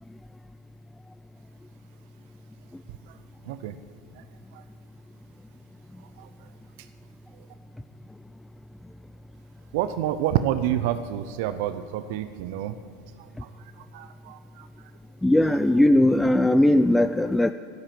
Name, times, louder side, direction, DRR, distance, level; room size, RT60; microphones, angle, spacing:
voice 1, 3.4-3.8 4.2-4.3 4.5-4.6 6.2-6.3 9.7-12.8 13.2-13.5 13.8-14.7, right 11 dB, 65° right, 11 dB, 0.6 m, -29 dB
voice 2, 15.2-17.5, left 1 dB, 5° left, 11 dB, 0.4 m, -19 dB
12.0 x 11.5 x 7.6 m, 2.1 s
hypercardioid pair, 100°, 0 cm